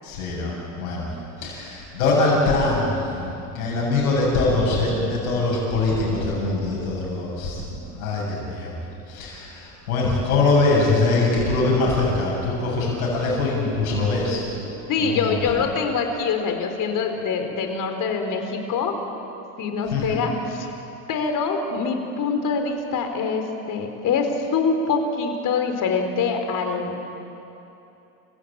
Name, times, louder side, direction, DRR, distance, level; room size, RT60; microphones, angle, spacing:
voice 1, 0.0-1.1 1.4-8.8 9.1-14.5 15.0-15.4 19.9-20.3, left 3 dB, 85° left, -4 dB, 7.6 m, -23 dB
voice 2, 14.9-19.0 19.6-20.7 21.1-27.2, left 5 dB, 45° left, 5 dB, 4.1 m, -24 dB
29.0 x 16.0 x 8.9 m, 2.9 s
supercardioid pair, 100°, 42 cm